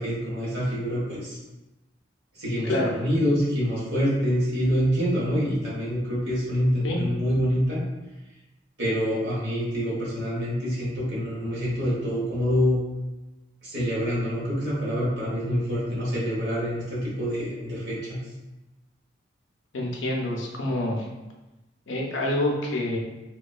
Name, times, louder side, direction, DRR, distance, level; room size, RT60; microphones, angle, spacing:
voice 1, 0.0-1.4 2.4-7.8 8.8-12.8 13.6-18.2, equal, 65° right, -8 dB, 1.2 m, -26 dB
voice 2, 19.7-21.0 21.9-23.0, left 1 dB, 85° left, 0 dB, 0.5 m, -27 dB
2.9 x 2.2 x 2.3 m, 1.0 s
head